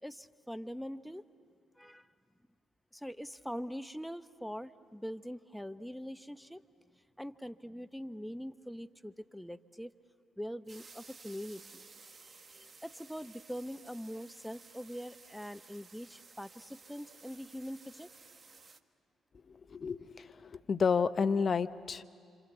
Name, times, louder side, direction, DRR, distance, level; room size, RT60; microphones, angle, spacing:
voice 1, 0.0-1.2 1.8-2.1 2.9-6.6 7.2-9.9 10.4-11.8 12.2-18.1, equal, ahead, 11 dB, 0.9 m, -43 dB
sound 1, 10.7-18.8, right 4 dB, 35° right, 1.3 m, -56 dB
voice 2, 19.7-22.0, left 5 dB, 45° left, 12 dB, 0.9 m, -30 dB
27.0 x 26.5 x 8.1 m, 2.4 s
hypercardioid pair, 45°, 0 cm